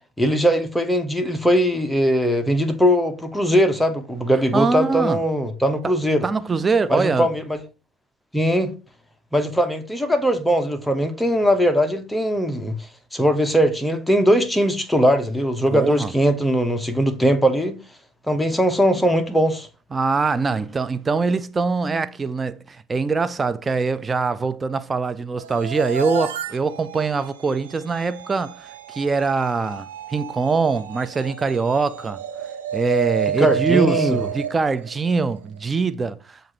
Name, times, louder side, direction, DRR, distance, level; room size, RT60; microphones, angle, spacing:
voice 1, 0.2-6.3 6.9-7.6 8.3-8.7 9.3-12.8 13.1-17.7 18.3-19.7 33.4-34.3, equal, 5° left, 0.9 m, -20 dB
voice 2, 4.5-5.2 6.2-7.3 15.7-16.1 19.9-32.2 32.7-36.4, right 4 dB, 25° right, 0.5 m, -23 dB
sound 1, 25.4-35.6, right 9 dB, 85° right, 0.5 m, -30 dB
7.2 x 2.6 x 2.9 m
hypercardioid pair, 70°, 0 cm